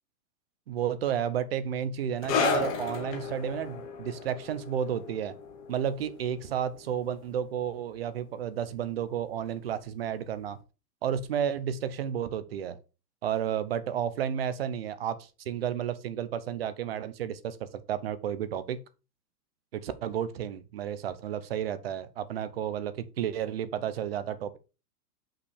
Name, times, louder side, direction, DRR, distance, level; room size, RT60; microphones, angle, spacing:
voice 1, 0.7-5.3 5.7-10.6 11.0-12.8 13.2-17.6 17.9-18.8 19.7-24.6, right 9 dB, 40° right, 0.7 m, -32 dB
sound 1, 2.2-9.2 9.5-9.7 10.5-10.6, left 5 dB, 20° left, 1.0 m, -34 dB
5.8 x 5.2 x 6.4 m
supercardioid pair, 175°, 48 cm